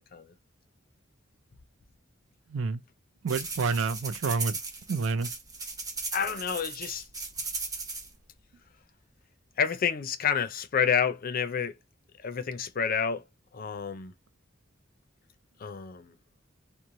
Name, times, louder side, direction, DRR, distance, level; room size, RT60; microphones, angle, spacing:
voice 1, 2.5-2.8 3.2-4.6 4.9-5.3, right 4 dB, 75° right, 0.5 m, -28 dB
sound 1, 3.3-8.1, right 3 dB, 20° right, 0.7 m, -37 dB
voice 2, 6.1-7.1 9.6-11.7 12.2-13.2 13.5-14.1 15.6-16.1, left 7 dB, 50° left, 0.5 m, -29 dB
3.0 x 2.1 x 2.5 m
head